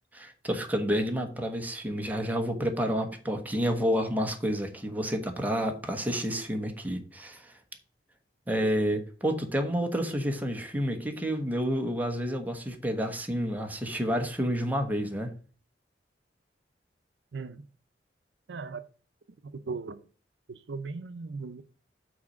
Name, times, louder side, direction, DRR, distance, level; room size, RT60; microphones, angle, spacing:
voice 1, 0.1-7.5 8.5-15.3, equal, 10° right, 1.1 m, -29 dB
voice 2, 17.3-17.6 18.5-18.8 19.4-20.0 20.5-21.6, right 4 dB, 85° right, 0.6 m, -38 dB
6.0 x 4.2 x 6.2 m
head